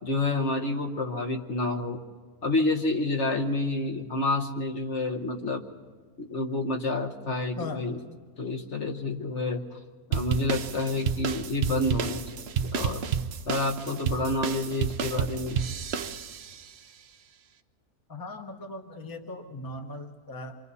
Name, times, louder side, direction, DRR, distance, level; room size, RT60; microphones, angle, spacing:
voice 1, 0.0-2.0 2.4-5.6 6.2-8.0 8.4-9.6 10.1-12.2 12.6-13.0 13.5-15.6, left 2 dB, 50° left, 3 dB, 1.5 m, -29 dB
voice 2, 7.6-7.9 18.1-20.6, left 2 dB, 15° left, 5 dB, 1.0 m, -38 dB
sound 1, 10.1-16.6, right 7 dB, 55° right, 0.8 m, -30 dB
28.5 x 24.5 x 4.2 m, 1.5 s
omnidirectional pair, 1.6 m